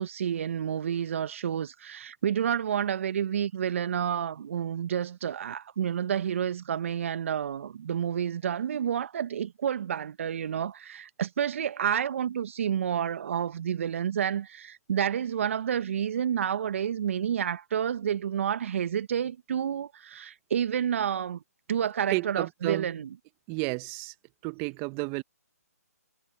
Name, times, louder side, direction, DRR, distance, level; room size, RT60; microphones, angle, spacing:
voice 1, 0.0-21.4 21.7-23.2, right 9 dB, 50° right, 1.5 m, -29 dB
voice 2, 22.1-22.9 23.5-24.1 24.4-25.2, right 30 dB, 25° right, 1.2 m, -31 dB
figure-of-eight pair, 140°, 9 cm